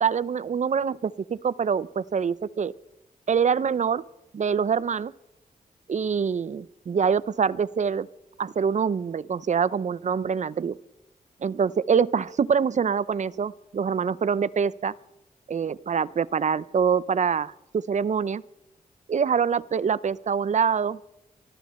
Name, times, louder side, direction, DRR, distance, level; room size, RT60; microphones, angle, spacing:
voice 1, 0.0-2.7 3.3-4.0 4.3-5.1 5.9-8.1 8.4-10.8 11.4-14.9 15.5-18.4 19.1-21.0, right 6 dB, 50° right, 19 dB, 0.5 m, -25 dB
24.0 x 13.5 x 4.3 m, 0.87 s
wide cardioid pair, 90°, 16 cm